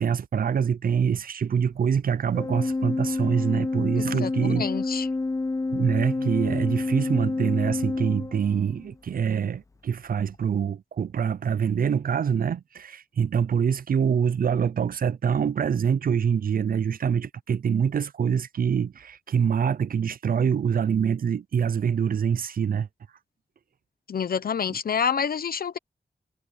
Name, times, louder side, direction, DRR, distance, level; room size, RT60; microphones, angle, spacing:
voice 1, 0.0-4.7 5.7-22.9, right 7 dB, 65° right, 0.5 m, -25 dB
Organ, 2.3-8.9, left 3 dB, 20° left, 0.5 m, -28 dB
voice 2, 3.9-5.1 24.1-25.8, left 7 dB, 70° left, 0.8 m, -28 dB
wide cardioid pair, 135°, 16 cm